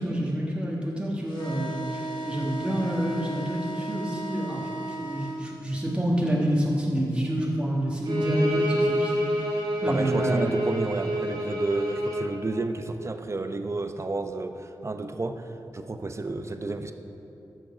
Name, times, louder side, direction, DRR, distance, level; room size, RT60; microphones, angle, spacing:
voice 1, 0.0-9.5 9.8-10.5, right 1 dB, 15° right, -4 dB, 1.5 m, -28 dB
sound 1, 1.3-5.4, right 2 dB, 85° left, 1.9 m, -35 dB
Bowed string instrument, 8.0-12.3, equal, 75° right, 2.0 m, -28 dB
voice 2, 9.9-16.9, right 2 dB, 35° right, 7 dB, 0.6 m, -31 dB
13.0 x 6.5 x 5.0 m, 2.8 s
wide cardioid pair, 100°, 8 cm